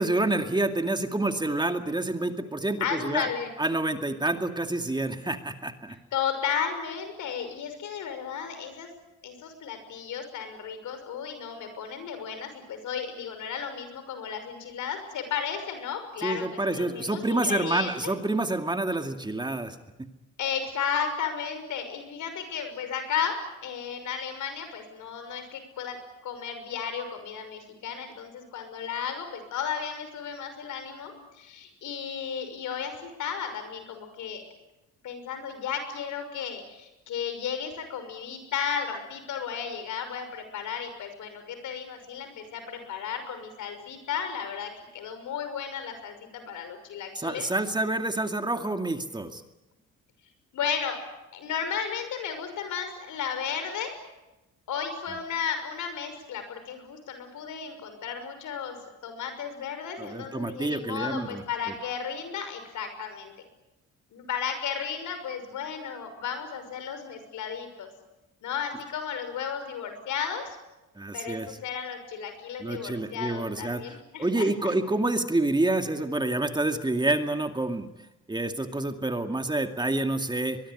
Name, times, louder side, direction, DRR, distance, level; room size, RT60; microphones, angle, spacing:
voice 1, 0.0-3.3 3.6-6.0 16.2-19.8 47.2-49.4 60.0-61.4 71.0-71.5 72.6-77.9 78.3-80.6, right 2 dB, 15° right, 6 dB, 2.3 m, -28 dB
voice 2, 2.8-3.5 6.1-8.9 9.2-18.1 20.4-34.4 35.0-47.5 50.5-51.1 51.3-54.0 54.7-58.8 59.0-63.3 64.1-67.9 68.4-70.6 71.1-74.7, left 7 dB, 80° left, 8 dB, 6.1 m, -34 dB
23.0 x 22.0 x 9.9 m, 1.0 s
cardioid pair, 90°, 30 cm